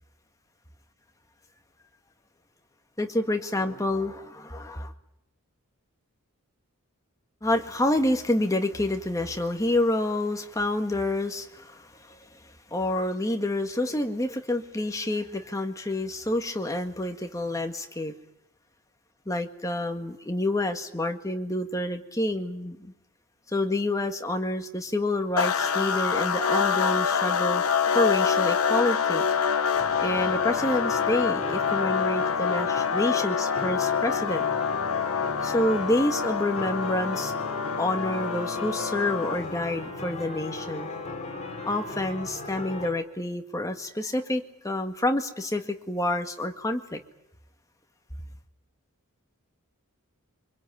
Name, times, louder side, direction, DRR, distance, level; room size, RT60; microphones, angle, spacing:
voice 1, 3.0-4.9 7.4-12.2 12.7-18.1 19.3-22.9 23.5-27.6 27.9-29.3 30.0-34.5 35.4-37.3 37.8-40.9 41.7-47.0, left 1 dB, 15° left, 5 dB, 1.9 m, -28 dB
sound 1, 25.4-39.6, left 6 dB, 75° left, 1.2 m, -26 dB
sound 2, 29.7-42.9, left 2 dB, 30° left, 4.8 m, -37 dB
25.0 x 23.5 x 9.3 m, 0.83 s
head